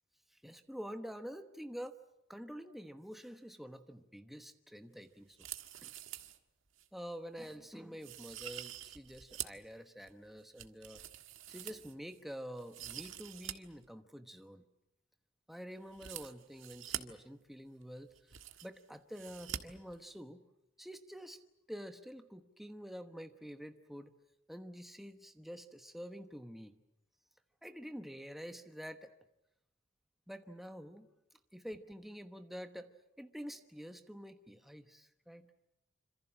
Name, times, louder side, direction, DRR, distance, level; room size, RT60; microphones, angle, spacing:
voice 1, 0.3-2.0 2.3-5.5 5.8-5.9 6.9-11.0 11.5-14.7 15.5-20.4 20.8-21.4 21.7-24.1 24.5-26.7 27.6-29.1 30.3-31.1 31.5-35.5, equal, ahead, 6 dB, 1.1 m, -48 dB
sound 1, 5.3-6.4 6.8-6.9 7.4-7.6 8.0-9.7 10.1-12.2 12.6-13.5 13.8-13.9 15.9-17.0 17.8-17.9 18.1-18.8 19.1-19.6 19.9-20.0, right 11 dB, 85° right, 1.6 m, -45 dB
26.5 x 26.5 x 7.5 m, 0.89 s
head